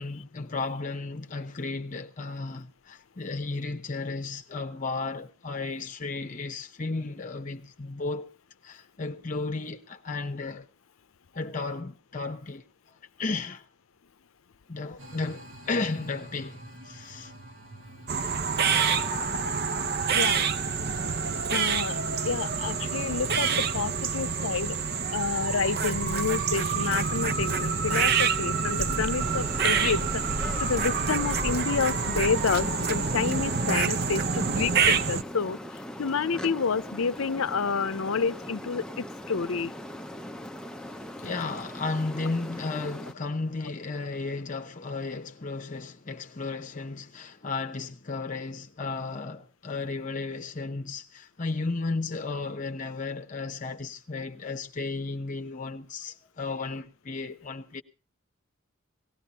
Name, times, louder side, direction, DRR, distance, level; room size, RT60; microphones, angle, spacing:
voice 1, 0.0-8.3 8.6-10.7 11.3-12.6 13.2-13.7 14.7-17.3 41.2-57.8, left 3 dB, 35° left, 0.8 m, -34 dB
sound 1, 15.0-28.3, right 1 dB, 65° right, 1.7 m, -51 dB
sound 2, 18.1-35.2, right 5 dB, 50° right, 0.7 m, -27 dB
voice 2, 20.1-20.5 21.5-24.8 25.1-30.2 30.6-39.7, left 5 dB, 75° left, 0.6 m, -29 dB
sound 3, 29.2-43.1, left 1 dB, 5° left, 0.6 m, -40 dB
18.5 x 16.0 x 2.9 m
head